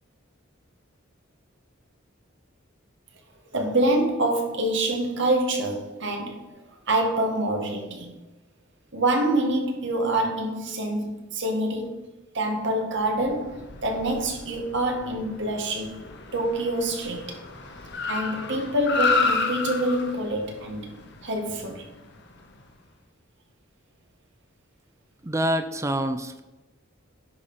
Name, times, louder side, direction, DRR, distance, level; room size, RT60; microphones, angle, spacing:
voice 1, 3.5-8.1 8.9-12.1 12.3-16.0 16.3-17.4 18.1-20.9 21.2-21.9, right 1 dB, 60° right, 1.9 m, -26 dB
Car, 13.1-22.6, left 4 dB, 60° left, 1.3 m, -31 dB
voice 2, 25.2-26.4, right 1 dB, 15° right, 0.5 m, -26 dB
10.5 x 5.1 x 5.6 m
head